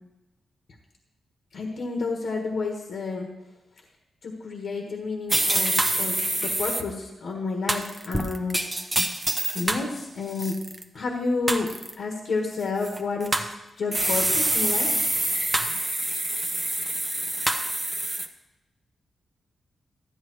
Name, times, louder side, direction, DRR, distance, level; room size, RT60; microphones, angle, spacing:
voice 1, 1.5-3.3 4.2-8.7 9.5-10.6 10.9-11.7 12.0-13.4 13.8-14.9, left 3 dB, 70° left, 1 dB, 1.5 m, -30 dB
sound 1, 5.3-6.8 7.7-9.9 10.3-10.8 11.5-11.9 12.8-13.5 13.9-18.3, right 1 dB, 15° right, 0.9 m, -26 dB
14.0 x 9.9 x 3.1 m, 1.0 s
cardioid pair, 95°, 0 cm